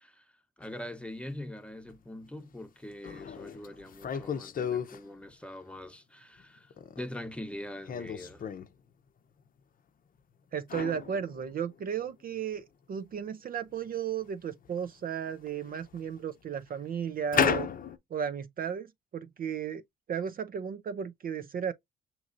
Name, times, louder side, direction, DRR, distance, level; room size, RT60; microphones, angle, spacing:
voice 1, 0.0-8.4, left 1 dB, 5° left, 0.9 m, -43 dB
sound 1, 0.6-0.7 1.9-2.0 2.4-2.5 3.0-5.0 6.4-7.1 7.8-8.7 10.7-12.1 12.4-12.5 13.9-14.0 14.6-14.8 15.3-16.2 17.3-18.0, left 8 dB, 45° left, 0.7 m, -33 dB
voice 2, 10.5-17.7 18.1-19.8 20.1-21.7, right 8 dB, 45° right, 0.5 m, -34 dB
6.1 x 3.0 x 2.5 m
cardioid pair, 90°, 20 cm